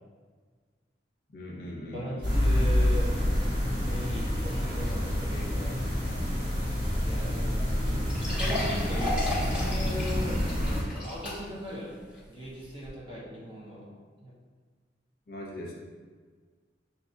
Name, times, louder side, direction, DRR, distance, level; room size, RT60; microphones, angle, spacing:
voice 1, 1.3-2.3 15.3-15.7, left 1 dB, 55° left, -3 dB, 0.8 m, -40 dB
voice 2, 1.9-3.2 3.8-6.3 7.0-7.5 8.2-12.0 12.3-13.9 14.2-14.3, equal, 30° right, -6 dB, 1.1 m, -39 dB
sound 1, 2.2-10.8, equal, 45° right, 1.5 m, -28 dB
sound 2, 7.6-7.7 8.1-11.7 12.2-12.3 12.8-12.9, left 1 dB, 5° right, 1.4 m, -34 dB
6.9 x 2.8 x 2.7 m, 1.5 s
head